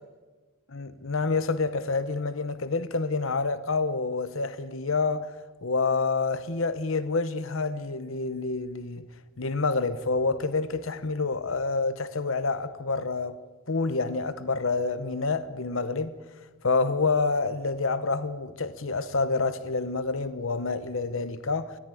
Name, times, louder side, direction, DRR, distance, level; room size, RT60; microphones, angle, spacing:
voice 1, 0.7-5.3 5.6-9.1 9.4-13.4 13.7-16.2 16.6-21.8, left 3 dB, 60° left, 1.0 m, -28 dB
21.0 x 14.5 x 9.9 m
head